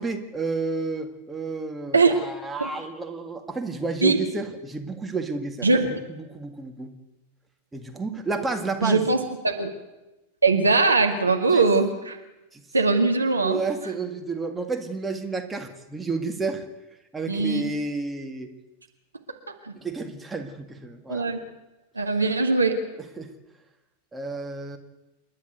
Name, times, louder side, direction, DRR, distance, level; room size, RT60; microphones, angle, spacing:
voice 1, 0.0-6.9 7.7-9.1 11.5-11.6 12.5-12.6 13.4-16.7 17.1-18.5 19.7-21.3 22.9-23.3 24.1-24.8, right 3 dB, 10° right, 5 dB, 2.0 m, -31 dB
voice 2, 8.8-9.7 10.4-12.2 12.7-13.6 17.3-17.6 19.6-19.7 21.1-21.4 22.0-22.8, right 3 dB, 80° right, 4 dB, 2.0 m, -21 dB
28.0 x 11.5 x 8.2 m, 1.0 s
figure-of-eight pair, 90°, 0 cm